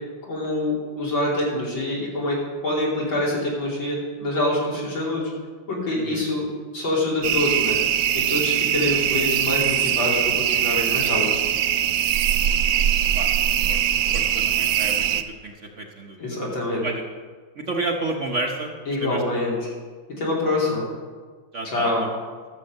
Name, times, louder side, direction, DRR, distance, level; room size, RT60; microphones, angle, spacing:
voice 1, 0.3-2.4 2.6-5.2 5.7-7.8 8.1-11.3 16.2-16.8 18.9-19.7 20.2-20.9 21.6-22.0, left 1 dB, 85° left, -5 dB, 3.9 m, -25 dB
voice 2, 5.9-6.2 12.7-12.9 13.1-13.8 14.1-16.4 16.8-17.0 17.5-18.7 19.0-19.2 21.5-22.2, right 2 dB, 45° right, 1 dB, 1.1 m, -31 dB
sound 1, 7.2-15.2, right 10 dB, 85° right, 0.7 m, -22 dB
12.5 x 7.5 x 6.4 m, 1.5 s
omnidirectional pair, 2.1 m